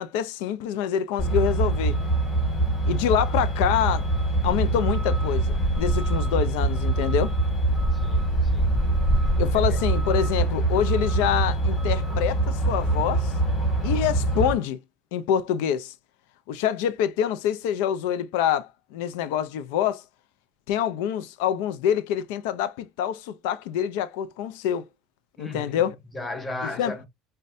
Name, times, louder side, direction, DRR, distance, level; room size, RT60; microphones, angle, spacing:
voice 1, 0.0-2.0 2.9-4.1 4.4-7.3 9.4-13.3 13.8-14.8 15.1-15.9 16.5-20.0 20.7-24.8 25.4-25.9 26.6-26.9, left 9 dB, 90° left, 0.4 m, -26 dB
Truck, 1.2-14.5, right 2 dB, 30° left, 1.9 m, -24 dB
voice 2, 7.9-8.8 9.5-9.9 25.4-25.8 26.1-27.1, left 2 dB, 15° left, 0.9 m, -36 dB
5.2 x 2.2 x 2.4 m
cardioid pair, 120°, 0 cm